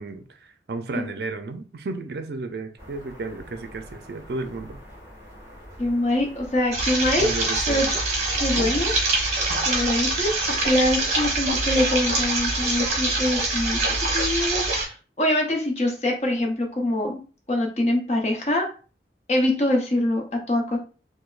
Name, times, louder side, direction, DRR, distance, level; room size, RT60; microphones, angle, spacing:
voice 1, 0.0-4.8 7.1-7.9 8.6-8.8 9.5-9.7, right 3 dB, 65° right, 0.4 m, -33 dB
sound 1, 2.8-14.2, equal, 15° right, 1.7 m, -44 dB
voice 2, 5.8-7.3 7.7-7.9 8.4-9.0 9.7-13.8 14.1-17.2 17.5-18.7 19.3-20.8, left 1 dB, 35° left, 0.8 m, -24 dB
sound 2, 6.7-14.9, right 2 dB, 40° right, 1.0 m, -24 dB
4.9 x 2.1 x 2.4 m
head